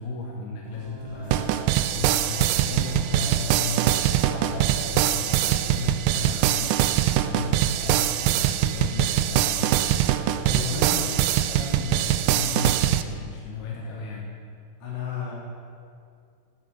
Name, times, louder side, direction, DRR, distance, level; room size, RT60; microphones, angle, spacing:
voice 1, 0.0-6.8 7.1-9.9 10.2-14.3, left 3 dB, 80° left, -2 dB, 3.0 m, -34 dB
sound 1, 0.6-5.7, right 3 dB, 40° right, 2.5 m, -42 dB
sound 2, 1.3-13.0, right 12 dB, 85° right, 1.9 m, -23 dB
voice 2, 10.3-11.1 14.8-15.3, left 5 dB, 50° left, -5 dB, 3.9 m, -33 dB
10.0 x 8.5 x 6.8 m, 2.3 s
omnidirectional pair, 4.4 m